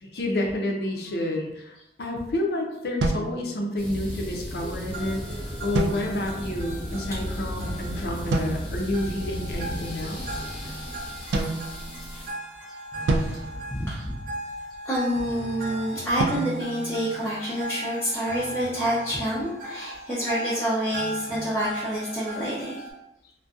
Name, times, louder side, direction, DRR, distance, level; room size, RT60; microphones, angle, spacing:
voice 1, 0.0-5.2 5.6-10.2, left 1 dB, 65° left, 1 dB, 0.5 m, -29 dB
sound 1, 3.0-4.1 5.7-6.5 8.3-9.0 11.3-12.4 13.1-14.5 16.2-17.7, right 2 dB, 85° right, 0.3 m, -30 dB
sound 2, 3.8-12.3, left 1 dB, 30° left, 0.8 m, -35 dB
sound 3, 4.9-22.9, right 1 dB, 55° right, 0.7 m, -38 dB
voice 2, 13.0-14.2 14.8-22.8, equal, 15° left, -9 dB, 0.5 m, -28 dB
2.6 x 2.1 x 2.4 m, 0.86 s
head